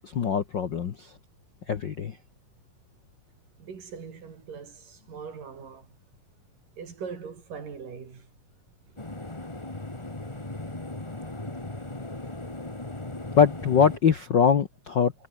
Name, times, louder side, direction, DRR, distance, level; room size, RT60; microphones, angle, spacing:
voice 1, 0.1-0.9 1.7-2.2 13.4-15.1, left 7 dB, 60° left, 1.2 m, -22 dB
voice 2, 3.6-6.0 6.8-8.3, right 6 dB, 75° right, 5.6 m, -41 dB
sound 1, 9.0-14.0, left 2 dB, 10° left, 1.6 m, -37 dB
omnidirectional pair, 3.8 m